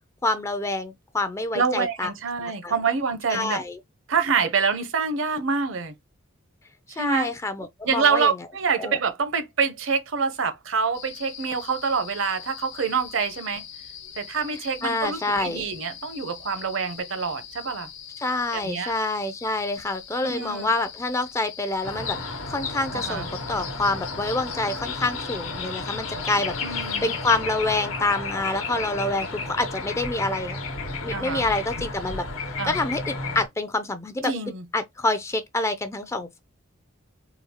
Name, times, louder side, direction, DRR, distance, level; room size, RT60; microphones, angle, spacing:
voice 1, 0.2-2.1 2.4-2.7 3.3-3.8 7.0-8.3 8.8-9.0 14.8-15.6 18.2-22.2 22.5-26.5 27.0-30.6 31.0-32.2 32.6-34.3 34.7-36.4, left 2 dB, 15° left, 0.3 m, -27 dB
voice 2, 1.5-3.6 4.1-5.9 6.9-7.3 7.9-13.6 14.2-17.9 18.5-18.9 20.2-20.7 22.9-23.3 26.6-27.1 31.1-31.4 32.6-32.8 34.2-34.6, right 5 dB, 70° right, 0.7 m, -26 dB
sound 1, 10.9-27.4, left 8 dB, 60° left, 0.9 m, -43 dB
sound 2, 21.8-33.5, left 3 dB, 90° left, 1.0 m, -32 dB
3.8 x 2.3 x 2.8 m
head